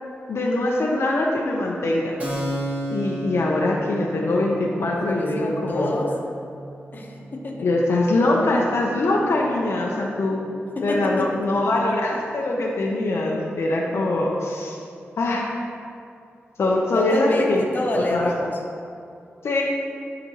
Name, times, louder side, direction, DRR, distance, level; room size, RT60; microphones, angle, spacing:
voice 1, 0.3-2.2 2.9-5.9 7.5-10.4 10.8-14.8 15.2-15.5 16.6-17.6 17.9-18.3 19.4-19.6, left 2 dB, 75° left, -2 dB, 0.8 m, -23 dB
Keyboard (musical), 2.2-9.5, equal, 30° right, 1.4 m, -35 dB
voice 2, 5.1-6.1 6.9-7.7 10.8-11.5 16.9-18.6, left 1 dB, 45° left, -1 dB, 1.1 m, -27 dB
11.0 x 5.1 x 3.0 m, 2.4 s
wide cardioid pair, 90°, 5 cm